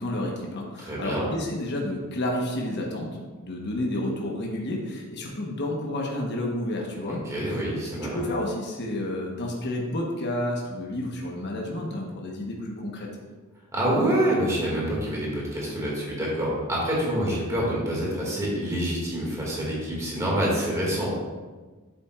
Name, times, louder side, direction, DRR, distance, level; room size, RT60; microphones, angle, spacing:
voice 1, 0.0-3.1 3.4-7.2 7.5-7.6 7.9-13.1, left 1 dB, 50° left, -1 dB, 1.2 m, -30 dB
voice 2, 0.8-1.3 7.3-8.2 13.7-21.1, right 1 dB, 15° right, -5 dB, 2.2 m, -26 dB
8.6 x 7.5 x 2.5 m, 1.3 s
head